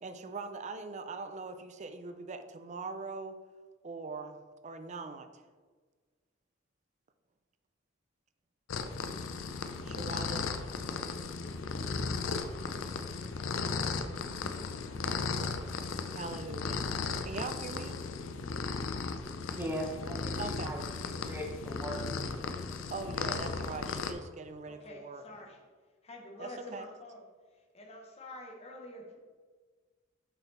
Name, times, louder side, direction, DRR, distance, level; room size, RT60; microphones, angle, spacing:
voice 1, 0.0-3.3 3.8-5.4 9.8-10.5 16.1-16.8 17.2-18.0 20.4-20.7 22.9-25.2 26.4-26.9, right 3 dB, 35° right, 9 dB, 0.5 m, -41 dB
sound 1, 8.7-24.1, left 4 dB, 90° left, 0.5 m, -36 dB
voice 2, 19.5-22.1, equal, 10° right, 0 dB, 0.9 m, -39 dB
voice 3, 24.6-25.6 26.0-27.2 27.5-29.2, left 1 dB, 35° left, 2 dB, 1.0 m, -47 dB
6.7 x 4.1 x 4.2 m, 1.5 s
head